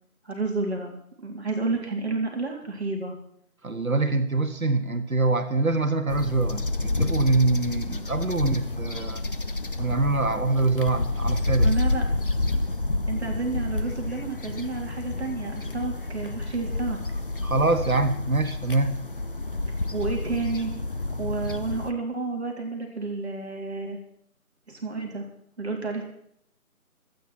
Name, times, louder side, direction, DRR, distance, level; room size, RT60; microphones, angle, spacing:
voice 1, 0.2-3.2 11.6-12.0 13.1-17.0 19.9-20.7 21.2-24.0 24.7-25.3 25.6-26.0, right 3 dB, 45° right, 1 dB, 3.5 m, -30 dB
voice 2, 3.6-9.3 9.8-11.7 17.4-19.0, right 3 dB, 70° right, 7 dB, 1.9 m, -24 dB
sound 1, 6.1-21.9, left 2 dB, 35° left, 1.0 m, -29 dB
27.5 x 9.6 x 4.5 m, 0.68 s
figure-of-eight pair, 165°, 44 cm